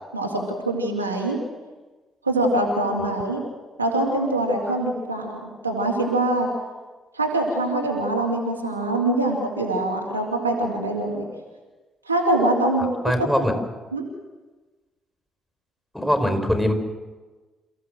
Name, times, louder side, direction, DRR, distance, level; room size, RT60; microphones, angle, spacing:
voice 1, 0.1-1.4 2.2-3.4 3.8-6.5 7.1-11.3 12.1-13.1 13.9-14.0, right 1 dB, 85° right, -1 dB, 2.6 m, -24 dB
voice 2, 13.0-13.5 15.9-16.7, equal, 5° left, 6 dB, 5.1 m, -22 dB
28.0 x 15.5 x 7.7 m, 1.3 s
figure-of-eight pair, 40°, 0 cm